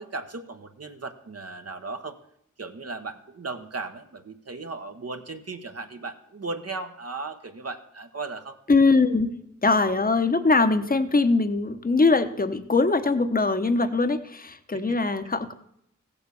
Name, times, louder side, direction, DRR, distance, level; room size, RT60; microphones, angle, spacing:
voice 1, 0.0-2.2 2.6-8.6 14.7-15.0, right 3 dB, 50° right, 6 dB, 1.1 m, -36 dB
voice 2, 8.7-15.5, left 3 dB, 30° left, 10 dB, 1.0 m, -22 dB
15.5 x 7.1 x 6.9 m, 0.76 s
cardioid pair, 45°, 30 cm